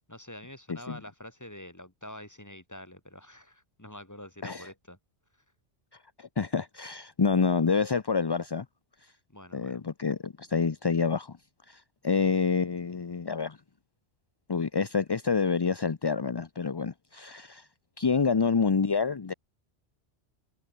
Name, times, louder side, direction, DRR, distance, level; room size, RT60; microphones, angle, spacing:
voice 1, 0.1-5.0 9.3-9.8, left 1 dB, 15° left, 2.3 m, -46 dB
voice 2, 6.2-8.7 9.0-9.1 9.5-11.4 11.7-13.6 14.5-17.7 18.0-19.3, left 5 dB, 30° left, 0.5 m, -28 dB
omnidirectional pair, 1.2 m